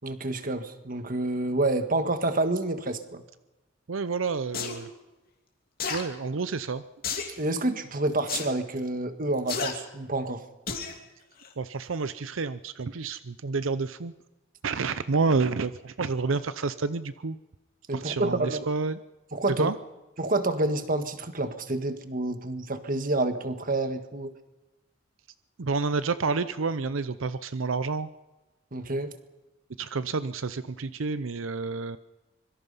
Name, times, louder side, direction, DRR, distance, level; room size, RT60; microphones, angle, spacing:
voice 1, 0.0-3.2 7.4-10.4 17.9-18.7 19.3-19.7 20.2-24.3 28.7-29.1, right 2 dB, 45° right, 9 dB, 1.6 m, -28 dB
voice 2, 3.9-4.9 5.9-6.8 11.6-14.1 14.6-17.4 17.9-19.0 19.6-19.8 25.6-28.1 29.8-32.0, right 4 dB, 85° right, 13 dB, 0.7 m, -29 dB
sound 1, 4.5-4.8 5.8-6.0 7.0-7.4 8.3-8.5 9.5-9.7 10.7-10.9 11.4-11.5, left 6 dB, 50° left, 2.9 m, -31 dB
25.0 x 23.0 x 5.6 m, 1.1 s
head